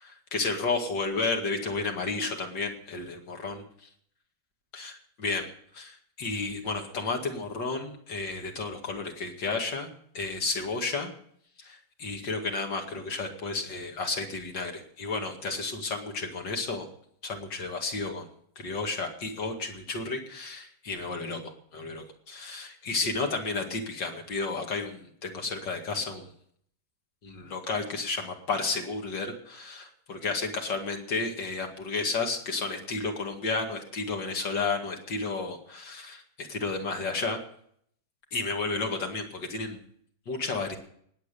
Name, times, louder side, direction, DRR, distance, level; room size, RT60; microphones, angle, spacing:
voice 1, 0.0-3.6 4.7-9.9 10.1-11.1 11.6-16.9 17.2-18.3 18.6-26.3 27.2-37.4 38.3-39.8 40.3-40.8, left 3 dB, 90° left, 3 dB, 2.8 m, -32 dB
19.0 x 8.4 x 6.9 m, 0.65 s
omnidirectional pair, 1.9 m